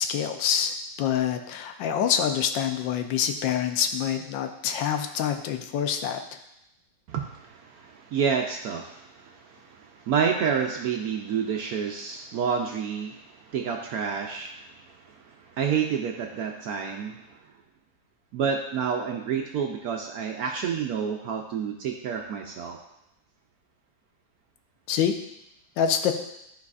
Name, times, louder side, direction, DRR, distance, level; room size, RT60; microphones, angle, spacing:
voice 1, 0.0-6.2 24.9-25.1 25.8-26.1, left 8 dB, 80° left, 7 dB, 1.3 m, -26 dB
voice 2, 7.1-17.3 18.3-22.8, right 7 dB, 75° right, 2 dB, 0.9 m, -29 dB
11.5 x 4.1 x 2.4 m, 0.84 s
omnidirectional pair, 2.0 m